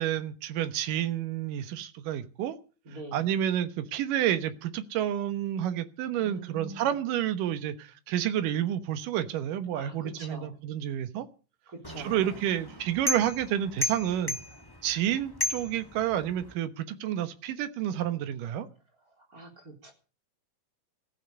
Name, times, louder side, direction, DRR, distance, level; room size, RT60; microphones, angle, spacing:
voice 1, 0.0-2.6 3.1-11.3 12.0-14.4 14.8-18.7, right 11 dB, 80° right, 10 dB, 2.8 m, -30 dB
voice 2, 2.9-3.2 6.2-7.0 9.7-10.6 11.7-12.4 19.2-19.9, right 2 dB, 25° right, 2 dB, 4.1 m, -44 dB
sound 1, 11.8-16.5, left 2 dB, 25° left, 0.5 m, -35 dB
16.0 x 15.0 x 5.3 m, 0.37 s
omnidirectional pair, 3.8 m